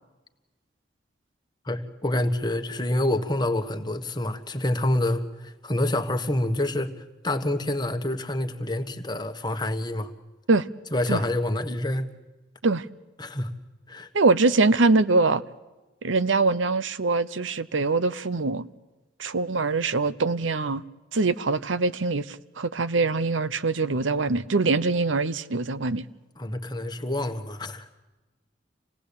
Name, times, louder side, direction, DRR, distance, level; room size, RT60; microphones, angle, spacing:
voice 1, 1.6-10.1 10.9-12.1 13.2-13.5 13.9-14.1 26.4-27.9, left 1 dB, 20° left, 1.5 m, -27 dB
voice 2, 14.1-15.4 16.0-18.6 19.2-20.8 21.1-26.0, right 3 dB, 80° right, 0.9 m, -23 dB
27.0 x 18.0 x 8.6 m
head